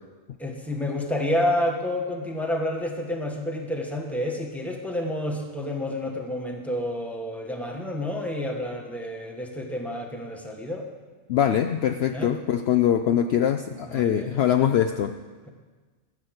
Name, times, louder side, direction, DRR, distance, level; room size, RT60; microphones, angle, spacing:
voice 1, 0.4-10.9 12.1-12.3 13.8-14.3, left 1 dB, ahead, 1 dB, 1.3 m, -29 dB
voice 2, 11.3-15.1, left 9 dB, 65° left, 8 dB, 0.7 m, -23 dB
14.0 x 7.6 x 7.9 m, 1.4 s
omnidirectional pair, 1.3 m